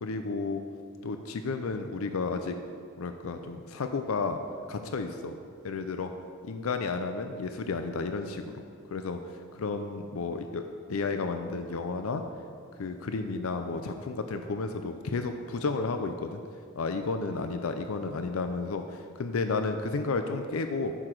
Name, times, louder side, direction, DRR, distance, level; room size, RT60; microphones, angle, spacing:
voice 1, 0.0-0.6 1.0-2.6 3.0-4.4 4.7-5.3 5.6-6.1 6.4-8.6 8.9-9.2 9.5-10.6 10.9-12.2 12.8-16.4 16.8-20.9, left 4 dB, 85° left, 7 dB, 0.5 m, -32 dB
9.9 x 6.7 x 4.6 m, 2.4 s
head